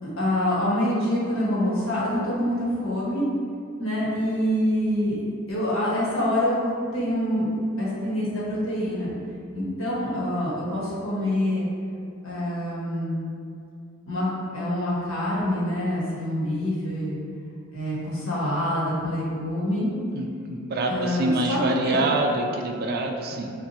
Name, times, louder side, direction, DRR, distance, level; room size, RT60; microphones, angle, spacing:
voice 1, 0.0-3.3 3.8-5.2 5.5-7.5 7.8-9.1 9.5-11.7 12.2-13.2 14.1-17.2 17.7-19.9 20.9-22.0, left 1 dB, 80° left, -7 dB, 1.4 m, -26 dB
voice 2, 20.1-23.5, right 2 dB, 50° right, 2 dB, 0.4 m, -26 dB
7.0 x 2.5 x 2.8 m, 2.5 s
head